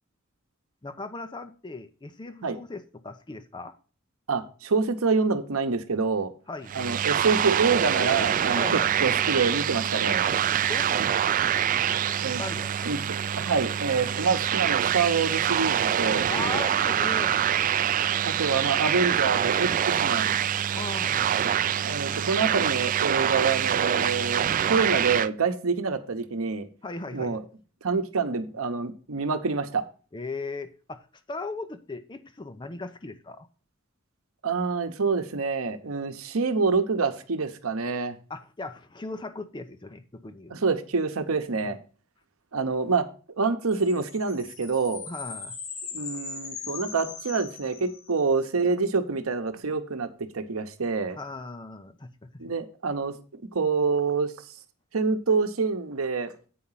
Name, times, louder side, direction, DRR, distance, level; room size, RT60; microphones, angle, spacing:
voice 1, 0.8-3.7 6.5-6.7 8.6-8.9 10.5-12.9 16.3-17.4 20.7-21.4 24.6-24.8 26.8-27.4 30.1-31.0 31.3-33.5 38.3-40.5 41.6-41.8 45.1-45.6 51.2-52.4, left 3 dB, 20° left, 0.6 m, -38 dB
voice 2, 4.3-6.3 6.7-10.2 12.2-12.4 12.8-13.0 13.4-16.3 18.2-20.4 21.8-26.7 27.1-27.4 27.8-29.8 34.4-38.2 40.5-41.8 42.5-43.1 43.4-45.1 45.9-50.1 50.3-51.2 52.4-53.2 53.5-54.3 54.9-56.3, right 4 dB, 85° right, 0.9 m, -26 dB
sound 1, 6.7-25.3, right 9 dB, 40° right, 0.3 m, -25 dB
sound 2, 43.7-48.3, left 5 dB, 80° left, 4.4 m, -39 dB
8.5 x 4.9 x 5.6 m
head